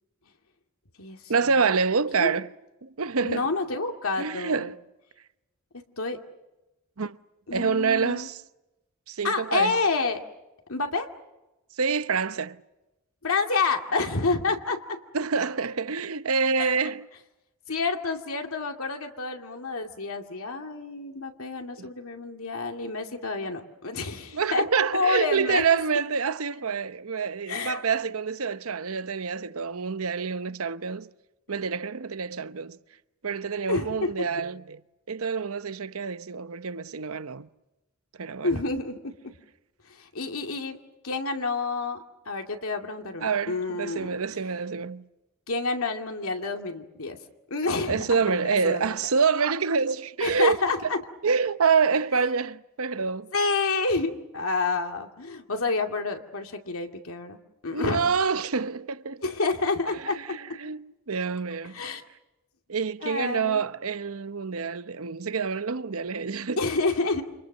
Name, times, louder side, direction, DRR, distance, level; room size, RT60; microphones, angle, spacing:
voice 1, 1.3-2.5 2.8-3.5 4.2-4.8 7.0-7.2 7.5-8.4 9.1-9.8 11.8-12.6 15.1-17.1 21.8-21.9 24.3-31.1 31.5-32.8 33.2-34.8 35.1-37.5 38.2-38.6 43.2-45.1 47.9-50.6 51.2-53.3 57.7-59.3 60.0-61.8 62.7-66.6, right 5 dB, 75° right, 0.9 m, -27 dB
voice 2, 3.2-4.7 6.0-6.2 7.5-8.3 9.2-10.2 10.7-11.1 13.2-14.8 16.6-16.7 17.7-24.6 24.9-25.6 27.5-27.8 33.7-34.1 38.4-39.1 39.9-40.8 41.0-44.1 45.5-47.2 47.5-48.8 50.2-51.0 53.3-57.4 57.6-58.0 59.2-60.2 61.7-62.0 63.0-63.6 66.6-67.3, left 3 dB, 80° left, 2.4 m, -28 dB
29.5 x 28.0 x 6.7 m
head